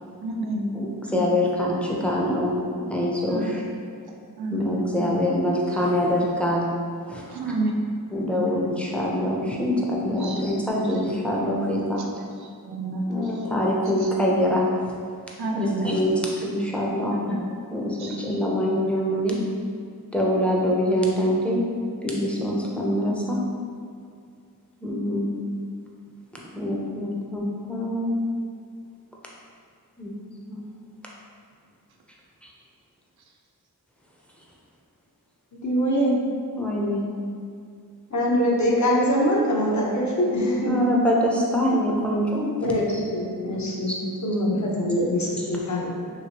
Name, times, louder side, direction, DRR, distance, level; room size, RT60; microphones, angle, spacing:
voice 1, 0.2-0.7 1.1-1.3 3.3-3.6 4.4-5.1 7.3-7.7 8.3-8.5 10.0-10.4 12.2-12.3 12.6-13.6 15.4-15.9 17.1-17.4 18.0-18.3, right 1 dB, 80° right, 1 dB, 0.5 m, -30 dB
voice 2, 0.7-2.5 2.9-3.6 4.5-6.6 7.1-7.4 8.1-12.0 13.1-14.7 15.5-19.4 20.1-21.6 22.0-23.4 24.8-25.3 26.5-28.2 30.0-30.1 30.5-30.6 36.5-37.0 40.7-42.7 43.9-44.0, left 1 dB, 5° left, -4 dB, 0.5 m, -25 dB
voice 3, 35.5-36.1 38.1-40.9 42.6-45.9, equal, 50° left, -3 dB, 0.7 m, -23 dB
2.9 x 2.8 x 2.9 m, 2.2 s
wide cardioid pair, 45°, 38 cm